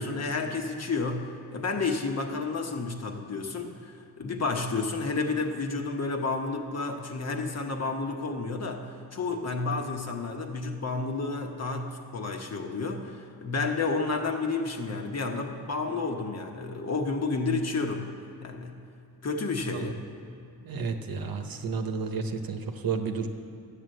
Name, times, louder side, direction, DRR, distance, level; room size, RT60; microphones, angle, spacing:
voice 1, 0.0-18.1 18.4-18.8 19.2-19.9, left 3 dB, 40° left, 3 dB, 1.2 m, -31 dB
voice 2, 20.6-23.3, right 5 dB, 60° right, 6 dB, 1.1 m, -31 dB
12.5 x 8.4 x 7.8 m, 2.6 s
cardioid pair, 115°, 39 cm